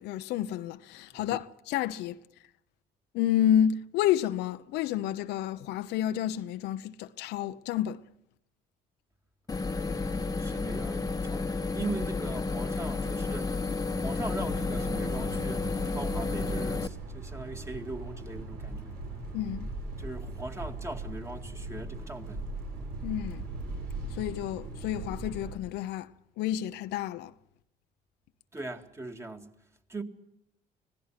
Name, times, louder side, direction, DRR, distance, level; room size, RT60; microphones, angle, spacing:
voice 1, 0.0-2.2 3.1-8.1 19.3-19.7 23.0-23.4 24.1-26.1 26.4-27.3, left 11 dB, 85° left, 0.9 m, -30 dB
sound 1, 9.5-16.9, left 3 dB, 20° left, 1.2 m, -31 dB
voice 2, 10.4-19.0 20.0-22.4 28.5-29.5 29.9-30.0, right 2 dB, 15° right, 2.1 m, -40 dB
sound 2, 14.2-25.6, right 2 dB, 75° right, 6.9 m, -39 dB
25.5 x 18.0 x 6.0 m
cardioid pair, 110°, 17 cm